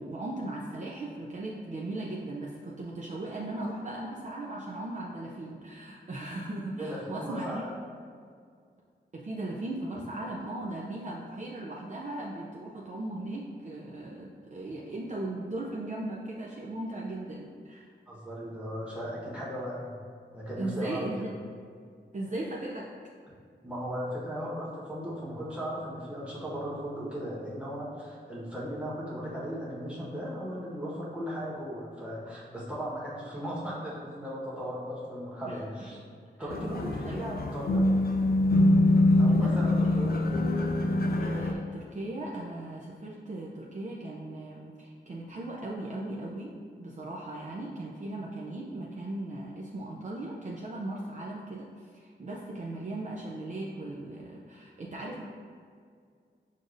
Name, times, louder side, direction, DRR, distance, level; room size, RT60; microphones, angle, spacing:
voice 1, 0.0-7.6 9.1-17.9 20.6-21.4 22.1-22.9 35.5-35.6 36.4-36.5 37.0-37.2 39.3-39.8 40.9-46.5 46.8-55.2, right 2 dB, 40° right, -4 dB, 0.4 m, -38 dB
voice 2, 6.8-7.8 18.1-19.9 20.3-21.3 23.6-36.0 36.4-37.9 39.2-40.2, equal, 5° right, -8 dB, 1.2 m, -37 dB
sound 1, 36.5-41.5, left 1 dB, 55° left, 0.4 m, -24 dB
6.4 x 2.6 x 2.5 m, 2.1 s
wide cardioid pair, 95°, 19 cm